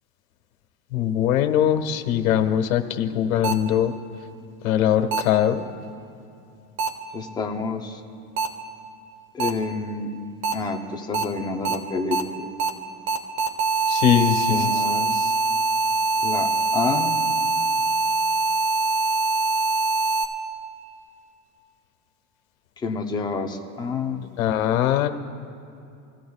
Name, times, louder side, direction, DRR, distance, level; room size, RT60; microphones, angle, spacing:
voice 1, 0.9-3.9 4.6-5.6 13.9-14.7 24.4-25.1, left 10 dB, 85° left, 6 dB, 1.5 m, -21 dB
sound 1, 3.4-3.5 5.1-5.2 6.8-6.9 8.4-8.5 9.4-9.5 10.4-10.5 11.1-11.2 11.6-11.7 12.1-12.2 12.6-12.7 13.1-20.2, right 3 dB, 80° right, 1.9 m, -23 dB
voice 2, 7.1-8.0 9.3-10.3 10.5-12.5 14.5-15.3 16.2-17.2 22.8-24.3, left 4 dB, 10° left, 3 dB, 0.6 m, -29 dB
27.5 x 15.5 x 2.3 m, 2.6 s
supercardioid pair, 165°, 41 cm